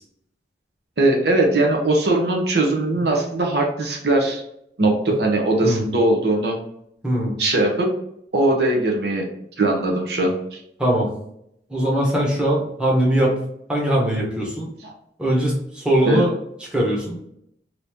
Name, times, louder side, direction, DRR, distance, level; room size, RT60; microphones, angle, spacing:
voice 1, 1.0-4.4 4.8-6.6 7.4-7.9 8.3-9.2 9.6-10.6 14.8-14.9 16.0-16.3, right 2 dB, 65° right, 1 dB, 0.7 m, -20 dB
voice 2, 11.7-13.3 13.7-14.7 15.2-16.3 16.7-17.2, right 1 dB, 5° right, -4 dB, 0.8 m, -20 dB
3.0 x 2.6 x 3.3 m, 0.74 s
head